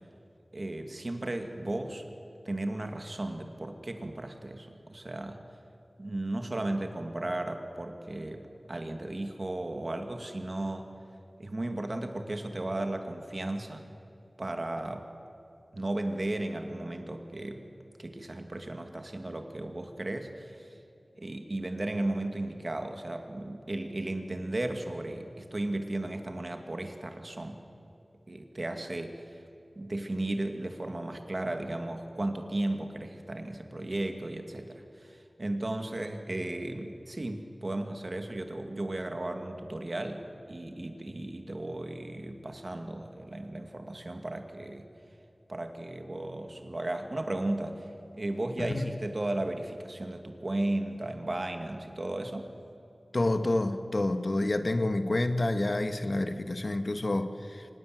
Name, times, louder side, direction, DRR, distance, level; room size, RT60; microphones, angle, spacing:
voice 1, 0.5-2.0 2.5-5.4 6.0-10.9 11.4-13.9 14.4-15.1 15.7-17.7 18.0-20.7 21.1-27.6 28.3-29.2 29.8-44.9 45.5-47.9 48.1-52.5, right 1 dB, 50° right, 5 dB, 2.3 m, -35 dB
voice 2, 48.6-48.9 53.1-57.7, left 2 dB, 55° left, 8 dB, 1.4 m, -28 dB
25.0 x 19.5 x 7.8 m, 2.7 s
wide cardioid pair, 45°, 0 cm